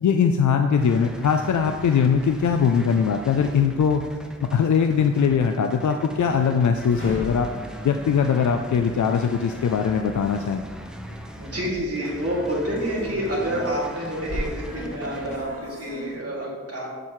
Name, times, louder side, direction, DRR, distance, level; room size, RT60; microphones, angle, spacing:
voice 1, 0.0-4.0 4.4-7.5 7.8-10.6, left 6 dB, 75° left, 5 dB, 0.5 m, -21 dB
sound 1, 0.8-15.4, equal, 5° right, 0.7 m, -41 dB
sound 2, 5.9-16.2, equal, 40° left, 2.3 m, -38 dB
voice 2, 11.3-16.9, right 1 dB, 50° right, -5 dB, 2.5 m, -28 dB
7.6 x 7.4 x 3.1 m, 1.4 s
wide cardioid pair, 65°, 30 cm